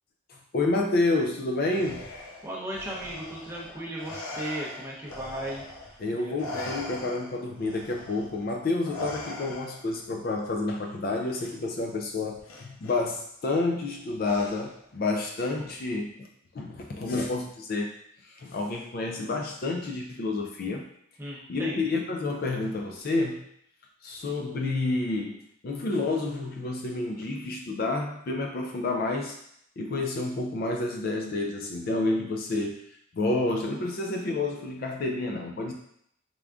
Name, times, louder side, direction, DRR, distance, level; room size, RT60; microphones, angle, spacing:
voice 1, 0.3-2.0 6.0-16.3 16.5-17.9 18.2-20.9 21.5-23.4 24.0-29.4 29.8-32.8 33.1-35.7, left 2 dB, 45° left, 2 dB, 0.3 m, -29 dB
Respiratory sounds, 1.7-6.0 6.4-10.0 11.3-11.5 12.5-13.0 14.2-14.9, left 2 dB, 90° left, 0.7 m, -41 dB
voice 2, 2.4-6.3 21.2-21.8, right 1 dB, 10° right, -4 dB, 0.6 m, -36 dB
3.6 x 3.5 x 2.4 m, 0.71 s
head